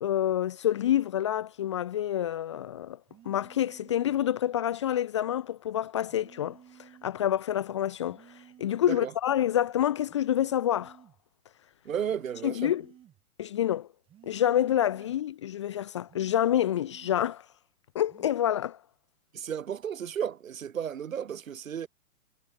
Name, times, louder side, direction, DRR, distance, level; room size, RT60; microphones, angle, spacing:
voice 1, 0.0-3.0 3.3-8.2 8.6-11.0 12.4-12.8 13.4-13.9 14.3-17.4 17.9-18.8, left 11 dB, 20° left, 0.9 m, -27 dB
sound 1, 3.1-4.2 6.1-7.2 8.1-9.2 10.1-11.2 12.0-13.2 14.1-15.2 16.0-17.2 18.0-18.4, right 11 dB, 10° right, 7.3 m, -55 dB
voice 2, 11.9-12.7 19.3-21.9, right 8 dB, 60° right, 3.5 m, -33 dB
hypercardioid pair, 175°, 44 cm